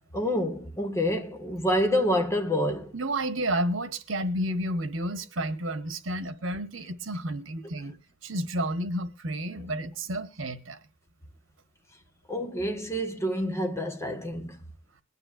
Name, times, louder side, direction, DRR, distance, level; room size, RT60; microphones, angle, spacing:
voice 1, 0.1-2.9 9.5-9.7 12.3-14.6, equal, 15° left, 1.4 m, -28 dB
voice 2, 2.9-8.0 8.2-10.8, right 1 dB, 85° right, 1.2 m, -31 dB
22.0 x 9.8 x 2.6 m
head